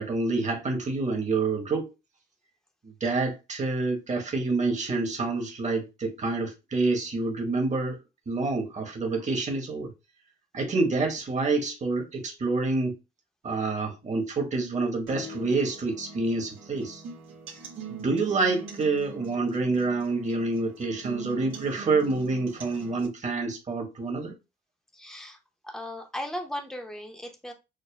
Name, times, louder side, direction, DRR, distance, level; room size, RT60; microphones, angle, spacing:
voice 1, 0.0-1.9 2.8-8.0 8.3-9.9 10.5-12.9 13.4-17.0 17.9-24.3, right 3 dB, 35° right, 1.4 m, -27 dB
sound 1, 15.1-23.1, right 4 dB, 90° right, 1.3 m, -43 dB
voice 2, 24.9-25.4 25.6-27.5, equal, ahead, 0.8 m, -37 dB
6.4 x 2.2 x 2.2 m
cardioid pair, 90°, 20 cm